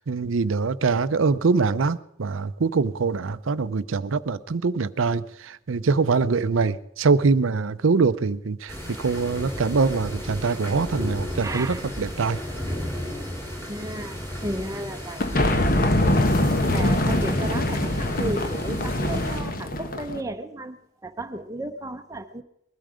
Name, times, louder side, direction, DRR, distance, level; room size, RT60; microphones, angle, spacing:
voice 1, 0.0-12.4 16.7-16.8, right 4 dB, 80° right, 0.6 m, -23 dB
sound 1, 8.7-19.4, equal, 10° left, 2.8 m, -34 dB
voice 2, 11.4-11.8 13.7-14.2 14.4-15.2 16.7-20.8 21.0-22.4, right 1 dB, 15° right, 0.8 m, -33 dB
sound 2, 15.2-20.2, left 1 dB, 45° left, 1.1 m, -23 dB
21.0 x 12.5 x 5.0 m
head